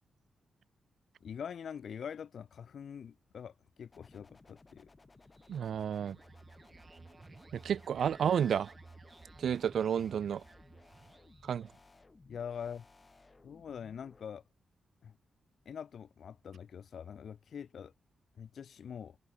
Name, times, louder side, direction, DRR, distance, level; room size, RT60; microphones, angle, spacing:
voice 1, 1.2-4.9 12.3-12.8 13.4-14.4 15.0-15.2 15.7-17.9 18.4-19.2, left 7 dB, 65° left, 0.8 m, -44 dB
sound 1, 3.9-14.2, left 3 dB, 25° left, 2.9 m, -60 dB
sound 2, 5.2-11.9, right 3 dB, 30° right, 4.0 m, -56 dB
voice 2, 5.5-6.2 7.5-8.7 9.4-10.4 11.4-11.7, right 8 dB, 75° right, 0.6 m, -31 dB
cardioid pair, 105°, 0 cm